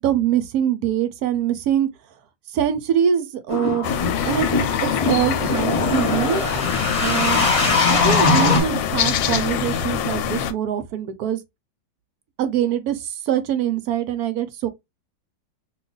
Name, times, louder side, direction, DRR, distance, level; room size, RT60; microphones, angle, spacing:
voice 1, 0.0-1.9 2.5-3.9 4.2-4.5 4.8-6.7 7.0-7.5 7.9-11.4 12.4-14.7, right 10 dB, 70° right, 1.0 m, -23 dB
sound 1, 3.5-8.6, left 3 dB, 30° left, 0.7 m, -21 dB
sound 2, 3.8-10.5, left 8 dB, 85° left, 1.3 m, -24 dB
2.8 x 2.4 x 3.7 m
omnidirectional pair, 1.9 m